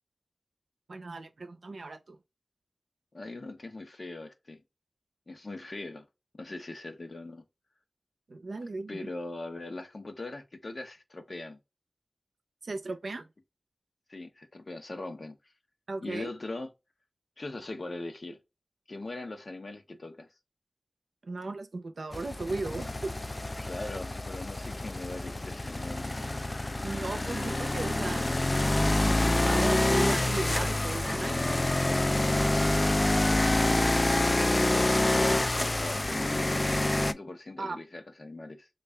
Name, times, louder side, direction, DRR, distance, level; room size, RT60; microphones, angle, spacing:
voice 1, 0.9-2.2 8.3-9.0 12.6-13.3 15.9-16.3 21.2-23.1 26.8-28.3 29.0-31.6 37.6-37.8, right 3 dB, 90° right, 0.6 m, -36 dB
voice 2, 3.1-4.6 5.3-6.0 6.3-7.5 8.9-11.6 14.1-15.4 16.0-16.7 17.4-18.4 18.9-20.3 23.6-26.1 33.4-38.7, left 2 dB, 60° left, 0.8 m, -41 dB
sound 1, 22.1-37.1, left 1 dB, 35° left, 0.3 m, -27 dB
3.2 x 2.4 x 3.3 m
wide cardioid pair, 45°, 0 cm